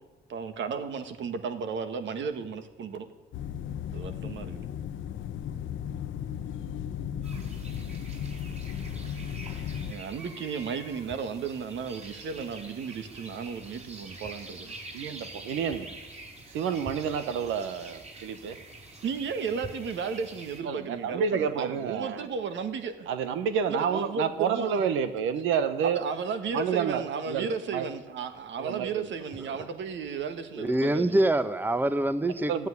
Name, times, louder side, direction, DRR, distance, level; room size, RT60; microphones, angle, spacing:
voice 1, 0.3-3.1 3.9-4.7 9.9-14.7 19.0-23.1 23.7-24.8 25.8-31.3, right 5 dB, 70° right, 8 dB, 1.8 m, -34 dB
sound 1, 3.3-9.9, left 9 dB, 75° left, 0.9 m, -35 dB
sound 2, 7.2-20.6, right 2 dB, 35° right, 4.0 m, -46 dB
voice 2, 14.9-15.9 16.5-18.6 20.6-22.2 23.1-26.0 26.5-27.0 27.3-27.9 28.6-29.1 32.5-32.7, right 7 dB, 90° right, 10 dB, 0.9 m, -29 dB
voice 3, 30.6-32.7, right 1 dB, 10° right, 12 dB, 0.8 m, -25 dB
14.0 x 9.3 x 9.6 m, 1.1 s
cardioid pair, 90°, 20 cm